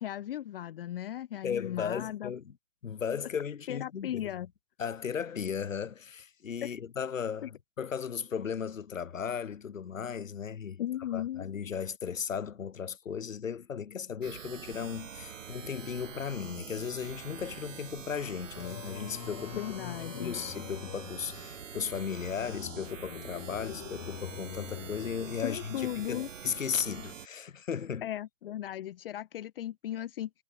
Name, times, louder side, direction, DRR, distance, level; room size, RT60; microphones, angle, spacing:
voice 1, 0.0-2.3 3.7-4.5 6.6-6.7 7.4-7.5 10.8-11.5 19.5-20.4 25.4-26.3 28.0-30.3, left 12 dB, 45° left, 1.0 m, -36 dB
voice 2, 1.4-2.6 2.8-4.3 4.8-10.8 11.1-19.6 20.1-28.1, left 7 dB, 85° left, 1.8 m, -36 dB
sound 1, 14.2-27.3, right 7 dB, 75° right, 2.3 m, -45 dB
Singing, 18.5-25.9, left 26 dB, 30° left, 4.1 m, -45 dB
hypercardioid pair, 150°, 38 cm